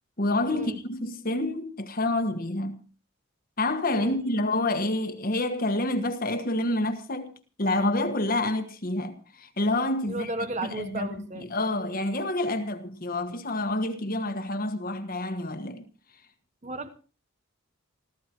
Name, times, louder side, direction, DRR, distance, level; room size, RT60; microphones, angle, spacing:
voice 1, 0.2-2.8 3.6-7.3 7.6-10.3 10.8-11.1 11.4-15.8, left 2 dB, 45° left, 1.4 m, -28 dB
voice 2, 10.1-11.5 16.6-16.9, right 2 dB, 35° right, 1.0 m, -34 dB
28.5 x 14.0 x 3.0 m
head